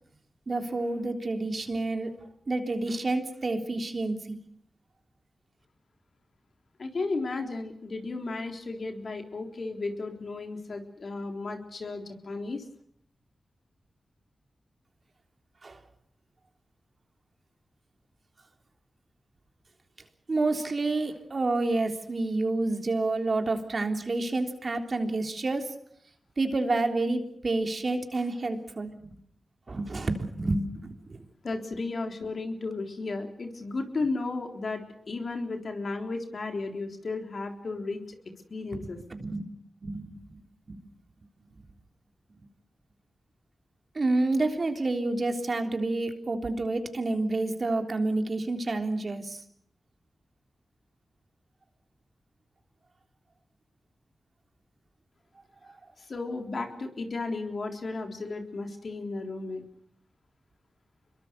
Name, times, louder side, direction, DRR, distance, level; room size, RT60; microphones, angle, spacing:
voice 1, 0.5-2.2 2.5-4.4 15.6-15.8 20.3-25.7 26.4-29.2 29.7-31.2 38.7-39.4 39.8-40.4 40.7-40.9 44.0-49.4 55.7-55.8, right 2 dB, 55° right, 5 dB, 3.5 m, -29 dB
voice 2, 6.8-12.6 31.4-38.2 38.5-39.0 56.0-59.7, left 3 dB, 65° left, 4 dB, 3.7 m, -34 dB
26.0 x 22.5 x 6.8 m, 0.66 s
cardioid pair, 45°, 0 cm